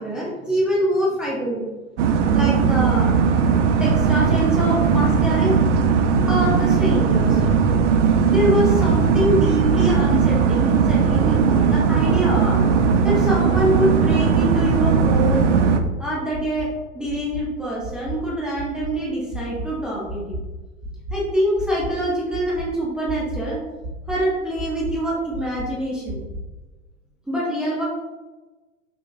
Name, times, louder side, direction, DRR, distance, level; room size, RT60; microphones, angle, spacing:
voice 1, 0.0-1.7 2.3-3.1 3.8-5.6 6.2-7.5 8.3-12.6 13.0-15.5 16.0-16.7 16.9-20.4 21.1-23.6 24.1-26.2 27.3-27.8, equal, ahead, -6 dB, 0.3 m, -24 dB
sound 1, 2.0-15.8, right 6 dB, 60° right, 0.5 m, -18 dB
sound 2, 12.8-12.9 13.3-13.6 14.1-14.4 14.8-15.2 15.6-15.9 16.3-16.6 17.1-17.4 17.8-18.1 18.6-18.9 19.3-19.6 20.1-20.4 20.8-21.1 21.6-21.9 22.3-22.6 23.1-23.4 23.8-24.2 24.6-24.9 25.3-25.7 26.1-26.4, equal, 40° right, 0.8 m, -32 dB
5.2 x 2.3 x 2.3 m, 1.2 s
figure-of-eight pair, 100°, 41 cm